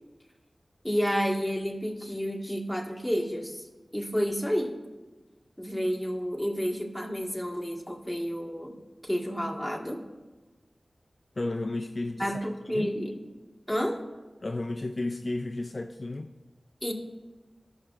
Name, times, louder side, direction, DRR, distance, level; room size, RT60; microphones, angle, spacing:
voice 1, 0.8-3.7 3.9-4.8 5.6-8.8 9.0-10.0 12.2-13.2 13.7-14.0 16.8-16.9, equal, ahead, -1 dB, 1.6 m, -30 dB
voice 2, 11.4-12.4 12.7-12.9 14.4-16.3, left 2 dB, 50° left, 5 dB, 0.4 m, -33 dB
18.0 x 6.4 x 2.5 m, 1.2 s
wide cardioid pair, 50°, 0 cm